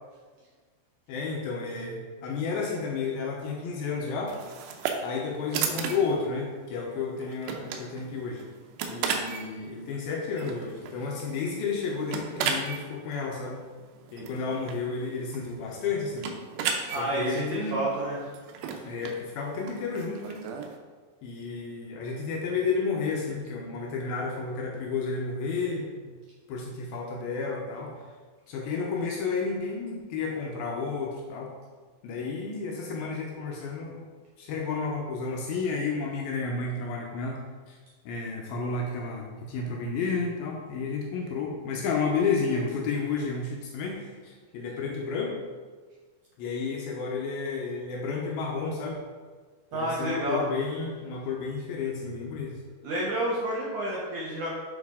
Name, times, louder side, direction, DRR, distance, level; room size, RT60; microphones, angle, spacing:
voice 1, 1.1-4.4 5.0-8.4 8.9-13.7 14.1-16.3 17.0-17.8 18.8-20.5 21.2-26.2 26.5-28.0 28.5-31.5 32.0-34.0 34.4-37.4 37.7-37.8 38.1-45.4 46.4-49.0 49.7-52.6, left 4 dB, 75° left, -1 dB, 2.3 m, -31 dB
sound 1, 4.3-20.8, right 6 dB, 90° right, 2.8 m, -36 dB
voice 2, 16.9-18.2 49.7-50.4 52.8-54.5, right 1 dB, 70° right, -5 dB, 1.9 m, -29 dB
8.4 x 4.2 x 3.6 m, 1.5 s
omnidirectional pair, 4.7 m